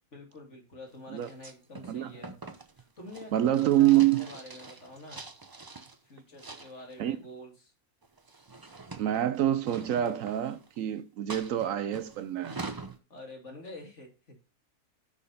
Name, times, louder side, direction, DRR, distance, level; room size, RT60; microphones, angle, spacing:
voice 1, 0.1-2.4 2.8-5.2 6.0-7.7 13.1-14.1, left 1 dB, 50° left, 2.7 m, -47 dB
sound 1, 1.2-6.0 6.4-7.0 8.0-10.8 11.3-13.0, right 3 dB, 30° right, 0.4 m, -44 dB
voice 2, 3.3-4.3 7.0-7.2 8.9-12.6, right 12 dB, 70° right, 0.9 m, -26 dB
6.4 x 5.8 x 5.4 m
omnidirectional pair, 1.5 m